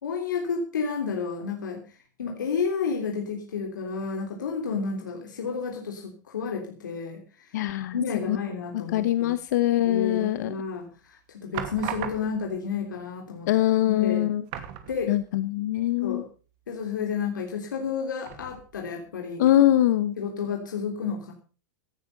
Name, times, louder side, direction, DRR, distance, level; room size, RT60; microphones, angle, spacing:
voice 1, 0.0-1.8 2.2-7.5 7.9-9.3 9.8-13.5 13.8-14.3 14.9-15.1 16.0-16.3 16.7-19.4 20.2-21.3, left 5 dB, 85° left, 1 dB, 3.2 m, -31 dB
voice 2, 7.5-7.9 8.3-8.4 8.9-10.5 13.5-14.4 15.1-16.2 19.4-20.1, left 13 dB, 65° left, 12 dB, 1.2 m, -22 dB
sound 1, 10.3-10.8 11.5-12.6 13.6-13.7 14.0-14.1 14.5-15.5 15.8-15.9 18.2-18.9 19.5-19.6, right 11 dB, 50° right, 2.6 m, -38 dB
17.0 x 10.5 x 5.4 m, 0.37 s
hypercardioid pair, 115°, 10 cm